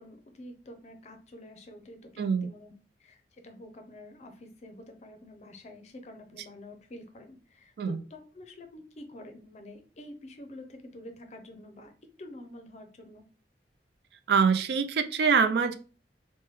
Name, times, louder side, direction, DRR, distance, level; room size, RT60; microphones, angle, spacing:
voice 1, 0.0-2.7 3.0-11.9 12.2-13.2, left 1 dB, 40° left, 5 dB, 0.5 m, -48 dB
voice 2, 2.2-2.5 7.8-8.0 14.3-15.7, right 6 dB, 65° right, 9 dB, 0.4 m, -24 dB
3.1 x 2.1 x 3.2 m, 0.37 s
head